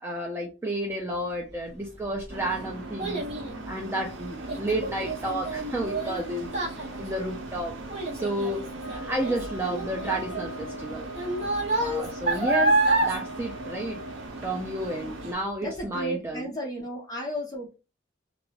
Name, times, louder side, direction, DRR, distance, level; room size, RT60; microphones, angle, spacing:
voice 1, 0.0-3.2 3.5-6.5 6.8-7.8 8.1-8.7 8.9-11.1 11.8-14.0 14.4-16.5, right 1 dB, 15° right, 0 dB, 0.4 m, -31 dB
Child speech kid speaking, 1.8-14.5 14.8-15.3 15.8-15.9, right 2 dB, 35° right, 0.8 m, -29 dB
sound 1, 2.3-15.3, right 2 dB, 85° right, 0.6 m, -40 dB
sound 2, 8.8-14.2, equal, 70° left, 0.7 m, -43 dB
voice 2, 15.6-17.8, right 1 dB, 20° left, 0 dB, 0.8 m, -33 dB
2.4 x 2.2 x 3.1 m, 0.31 s
head